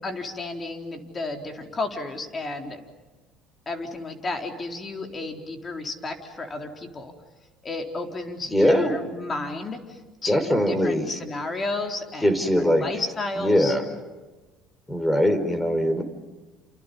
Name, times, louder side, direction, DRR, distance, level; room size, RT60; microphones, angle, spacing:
voice 1, 0.0-2.8 3.7-7.1 7.6-12.4 12.7-13.8, left 2 dB, 30° left, 3 dB, 4.2 m, -32 dB
voice 2, 8.5-8.9 10.3-11.1 12.2-12.9 13.4-13.8 14.9-16.0, equal, 10° left, 10 dB, 4.6 m, -21 dB
29.5 x 29.0 x 5.6 m, 1.2 s
supercardioid pair, 85°, 0 cm